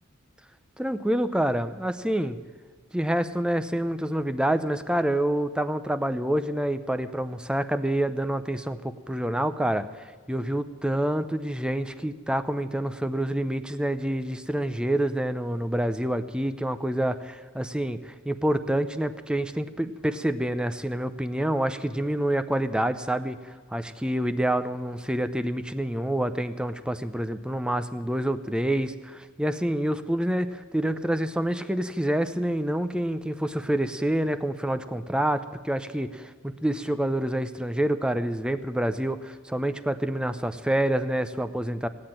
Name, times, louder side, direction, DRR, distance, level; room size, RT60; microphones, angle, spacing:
voice 1, 0.8-2.4 2.9-9.9 10.3-18.0 18.3-41.9, right 1 dB, 5° right, 10 dB, 0.6 m, -27 dB
17.0 x 9.7 x 8.9 m, 1.5 s
head